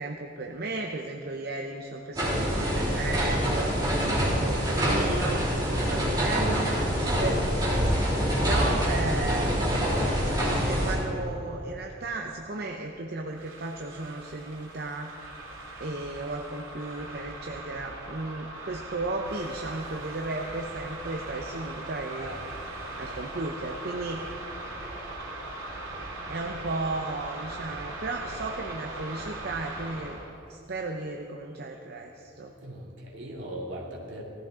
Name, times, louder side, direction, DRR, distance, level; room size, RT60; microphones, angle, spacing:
voice 1, 0.0-3.7 4.2-5.5 5.9-6.7 7.2-7.4 8.4-9.7 10.6-15.1 15.8-22.3 23.0-24.2 26.3-30.2 30.5-32.6, right 2 dB, 50° right, 2 dB, 0.7 m, -34 dB
sound 1, 2.1-10.9, equal, 20° right, 3.8 m, -25 dB
sound 2, 13.2-30.3, right 2 dB, 85° right, 3.6 m, -40 dB
voice 2, 22.1-22.6 32.6-34.2, right 1 dB, 70° right, -2 dB, 2.7 m, -39 dB
18.5 x 14.5 x 3.7 m, 2.8 s
head